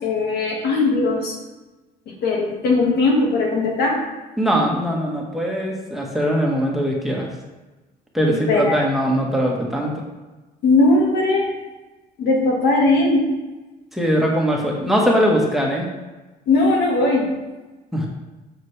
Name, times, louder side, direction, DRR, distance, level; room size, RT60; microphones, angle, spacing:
voice 1, 0.0-1.3 2.2-4.0 8.3-8.8 10.6-11.5 12.2-13.3 16.5-17.3, left 2 dB, 75° left, -1 dB, 1.8 m, -19 dB
voice 2, 4.4-7.3 8.1-9.9 13.9-15.9 17.9-18.1, equal, ahead, -2 dB, 1.5 m, -21 dB
6.7 x 6.6 x 3.4 m, 1.2 s
cardioid pair, 110°, 17 cm